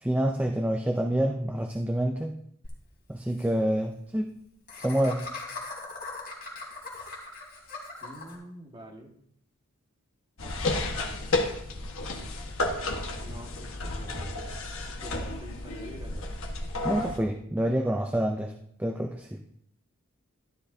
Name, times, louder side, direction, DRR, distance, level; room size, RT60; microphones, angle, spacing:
voice 1, 0.0-2.4 3.1-4.3 4.8-5.2 16.8-18.5 18.8-19.4, right 1 dB, 5° right, 4 dB, 0.5 m, -27 dB
Laughter, 2.6-2.7 3.0-3.1 3.3-3.5 4.7-8.4, left 3 dB, 45° left, 3.7 m, -40 dB
voice 2, 8.0-9.1 10.4-10.8 13.2-14.5 15.0-16.3, equal, 25° right, 1 dB, 1.7 m, -47 dB
sound 1, 10.4-17.2, left 2 dB, 65° left, 1.4 m, -32 dB
13.5 x 12.0 x 2.7 m, 0.71 s
head